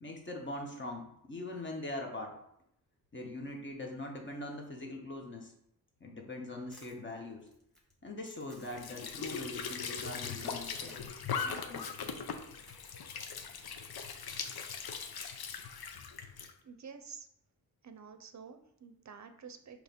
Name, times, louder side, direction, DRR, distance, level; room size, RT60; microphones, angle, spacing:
voice 1, 0.0-2.3 3.1-5.5 6.0-7.5 8.0-10.9 11.4-12.0, left 2 dB, 30° left, 1 dB, 1.2 m, -42 dB
Crumpling crinkling, 6.7-14.4, equal, ahead, 1.3 m, -60 dB
Squeak / Sink (filling or washing) / Trickle dribble, 8.6-16.5, left 6 dB, 90° left, 0.7 m, -40 dB
voice 2, 16.6-17.3 17.8-19.8, right 6 dB, 50° right, 8 dB, 0.6 m, -50 dB
6.4 x 3.1 x 5.2 m, 0.75 s
wide cardioid pair, 150°, 36 cm